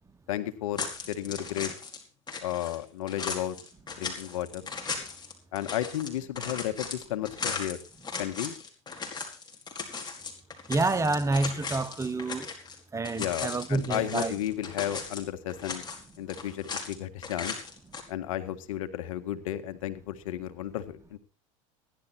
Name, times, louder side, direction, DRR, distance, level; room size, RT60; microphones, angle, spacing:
voice 1, 0.3-1.7 2.4-3.6 4.0-4.7 5.5-7.8 8.2-8.6 13.2-15.8 16.2-17.6 18.1-21.2, left 12 dB, 85° left, 1.8 m, -33 dB
sound 1, 0.8-2.0 2.3-12.8 13.0-15.2 15.5-17.0 17.2-18.0, left 5 dB, 25° left, 4.7 m, -37 dB
voice 2, 10.7-12.5 12.9-14.3, right 3 dB, 15° right, 1.3 m, -28 dB
16.5 x 11.5 x 4.5 m
hypercardioid pair, 95°, 17 cm